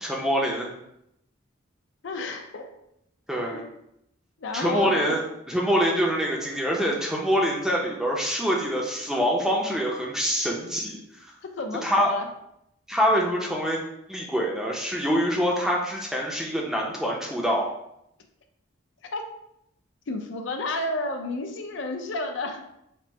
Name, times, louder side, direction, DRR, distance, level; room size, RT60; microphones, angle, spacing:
voice 1, 0.0-0.7 3.3-3.7 4.5-11.3 11.8-12.1 12.9-13.8 14.1-17.7, equal, ahead, -2 dB, 0.5 m, -25 dB
voice 2, 2.0-2.7 3.5-3.6 4.4-5.2 11.4-12.2 19.0-19.2 20.1-22.6, left 2 dB, 70° left, 5 dB, 0.5 m, -31 dB
4.4 x 2.0 x 4.1 m, 0.79 s
head